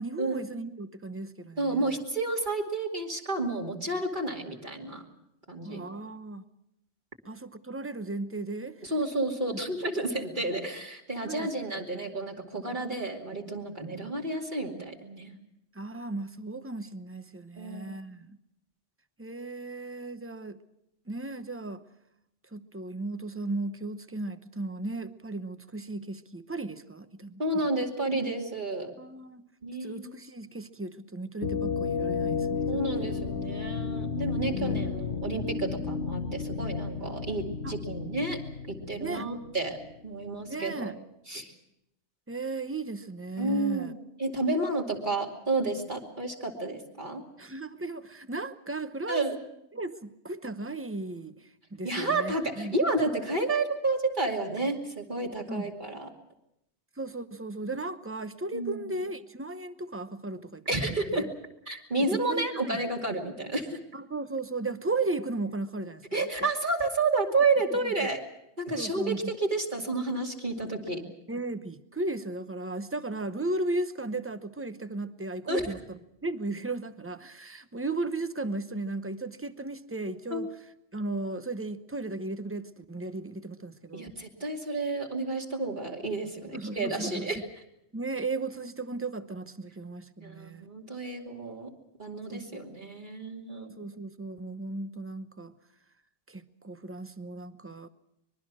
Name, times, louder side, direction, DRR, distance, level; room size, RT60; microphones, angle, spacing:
voice 1, 0.0-1.9 5.6-6.4 7.3-8.9 9.5-9.6 11.2-11.5 15.7-18.4 19.2-20.6 21.1-21.8 22.5-27.4 29.0-29.5 29.8-33.2 34.5-35.0 37.6-37.8 39.0-39.3 40.5-41.0 42.3-43.9 47.4-49.2 49.7-52.7 55.5-55.7 57.0-60.6 61.1-61.3 62.1-62.8 63.9-66.3 67.7-68.1 68.8-69.3 71.3-75.8 76.2-80.5 80.9-84.1 86.5-87.3 87.9-90.7 92.3-92.6 93.6-95.5 96.3-97.9, right 2 dB, 15° right, 11 dB, 0.8 m, -36 dB
voice 2, 1.6-5.0 5.5-5.8 8.8-15.3 17.6-17.9 27.4-28.9 29.6-30.1 32.7-38.4 38.7-39.8 40.0-40.9 41.3-41.5 43.4-47.2 49.1-49.4 51.8-56.1 58.5-58.8 60.7-61.3 61.7-63.8 66.1-68.2 68.6-71.0 75.5-75.6 80.3-80.5 83.9-87.4 90.2-91.7 92.0-93.7, right 2 dB, 40° right, -1 dB, 2.8 m, -31 dB
sound 1, 31.4-40.1, left 5 dB, 55° left, 1.2 m, -33 dB
24.5 x 22.0 x 6.2 m, 0.81 s
omnidirectional pair, 1.2 m